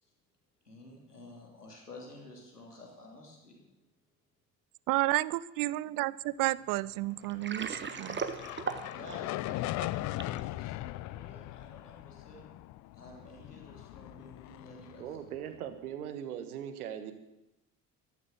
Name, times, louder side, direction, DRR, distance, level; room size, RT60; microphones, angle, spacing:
voice 1, 0.6-3.7 8.9-12.5 12.9-15.2, left 2 dB, 85° left, 0 dB, 3.1 m, -51 dB
voice 2, 4.9-6.1 6.4-8.2, right 19 dB, 45° right, 22 dB, 0.6 m, -31 dB
Water, 7.2-10.4, right 5 dB, 25° right, 1.4 m, -38 dB
sound 1, 7.3-15.7, left 17 dB, 40° left, 0.5 m, -40 dB
voice 3, 15.0-17.1, right 9 dB, 70° right, 9 dB, 1.7 m, -40 dB
14.5 x 13.5 x 6.9 m, 0.92 s
figure-of-eight pair, 55°, 45 cm